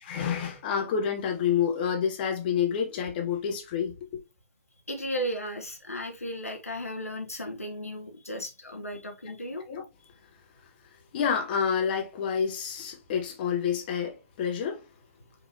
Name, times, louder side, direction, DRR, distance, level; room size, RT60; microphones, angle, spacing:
voice 1, 0.0-4.1 9.7-9.8 11.1-14.8, left 7 dB, 40° left, 1.2 m, -28 dB
voice 2, 4.9-9.6, equal, 85° left, 0.7 m, -35 dB
5.2 x 2.7 x 2.7 m
figure-of-eight pair, 120°, 8 cm